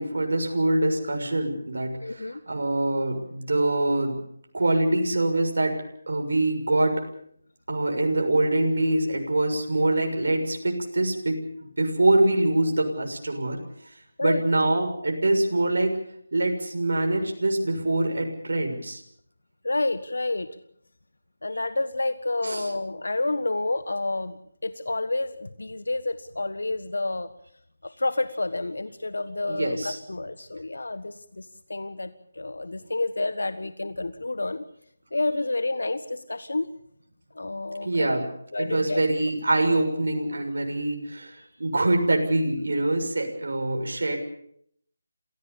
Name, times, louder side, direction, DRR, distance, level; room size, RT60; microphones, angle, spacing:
voice 1, 0.0-4.2 4.5-5.7 6.1-6.9 7.7-11.4 11.8-13.6 14.2-16.0 16.3-19.0 22.4-22.7 29.5-30.0 37.8-38.3 38.6-44.2, right 2 dB, 70° right, 3 dB, 6.8 m, -24 dB
voice 2, 2.0-2.4 14.2-14.4 19.6-20.5 21.4-27.3 27.8-34.6 35.1-36.7 37.3-38.2 38.5-39.0, left 2 dB, 80° left, 12 dB, 1.4 m, -29 dB
28.0 x 17.5 x 7.1 m, 0.69 s
figure-of-eight pair, 160°, 0 cm